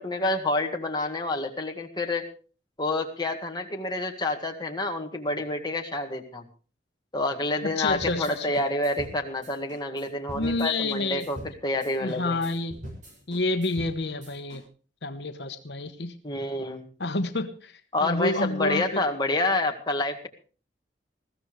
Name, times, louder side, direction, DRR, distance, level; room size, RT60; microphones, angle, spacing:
voice 1, 0.0-2.3 2.8-6.4 7.1-11.4 11.6-12.4 16.2-16.9 17.9-20.3, left 2 dB, 25° left, 3 dB, 1.9 m, -28 dB
voice 2, 7.6-8.6 10.3-11.3 12.0-12.8 13.3-14.6 15.0-16.1 17.0-19.0, left 2 dB, 70° left, 8 dB, 1.1 m, -29 dB
sound 1, 7.9-14.6, equal, 45° right, 6.7 m, -43 dB
20.5 x 15.0 x 3.2 m, 0.38 s
head